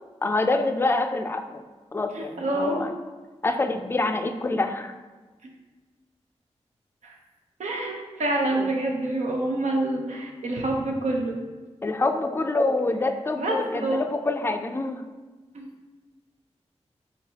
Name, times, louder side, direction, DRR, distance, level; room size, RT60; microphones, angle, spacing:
voice 1, 0.2-1.6 1.9-2.9 3.4-4.9 8.5-8.7 11.8-15.1, left 2 dB, 20° left, 7 dB, 0.3 m, -26 dB
voice 2, 2.1-2.9 7.0-7.2 7.6-11.4 13.4-14.0 15.5-15.7, right 1 dB, 90° right, 0 dB, 0.6 m, -27 dB
3.8 x 3.5 x 2.8 m, 1.2 s
cardioid pair, 40°, 12 cm